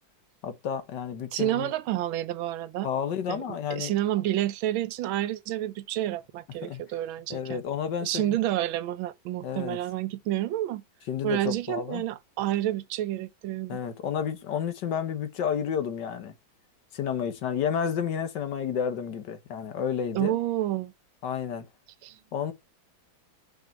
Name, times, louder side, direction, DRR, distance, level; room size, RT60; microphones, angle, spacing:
voice 1, 0.4-1.7 2.8-4.0 6.6-6.8 7.3-8.4 9.4-9.8 11.1-12.0 13.7-16.3 16.9-20.4 21.2-21.6 22.3-22.5, left 8 dB, 65° left, 1.6 m, -31 dB
voice 2, 1.3-2.9 3.3-7.6 8.0-10.8 11.2-13.8 20.1-20.9 22.0-22.2, right 14 dB, 90° right, 1.4 m, -29 dB
5.4 x 5.1 x 4.5 m
omnidirectional pair, 2.2 m